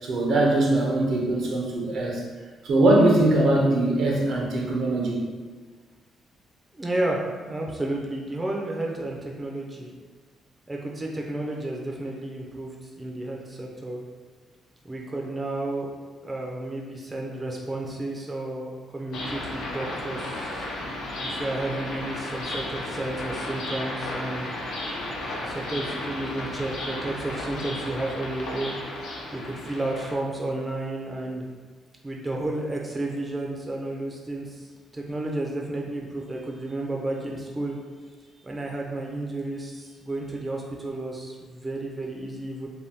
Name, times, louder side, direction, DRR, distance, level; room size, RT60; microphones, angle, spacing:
voice 1, 0.0-2.2 2.6-5.3, right 1 dB, 65° right, -1 dB, 0.6 m, -21 dB
voice 2, 6.7-9.9 10.7-14.0 14.8-15.9 16.2-20.7 21.2-24.5 25.4-28.8 29.3-31.5 32.0-37.8 38.4-42.7, right 2 dB, 20° right, -1 dB, 0.4 m, -32 dB
sound 1, 19.1-30.1, left 1 dB, 80° left, 0.6 m, -34 dB
2.6 x 2.2 x 3.4 m, 1.5 s
cardioid pair, 90°, 0 cm